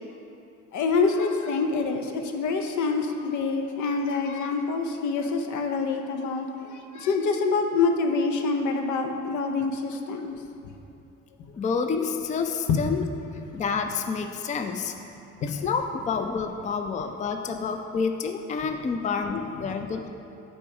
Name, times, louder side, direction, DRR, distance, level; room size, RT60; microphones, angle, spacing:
voice 1, 0.7-10.3 12.7-12.9 15.4-15.6, left 4 dB, 75° left, 5 dB, 0.7 m, -26 dB
voice 2, 11.5-13.0 13.5-15.0 15.4-20.1, left 5 dB, 25° left, 6 dB, 0.4 m, -28 dB
6.8 x 4.2 x 4.7 m, 2.7 s
cardioid pair, 90°, 30 cm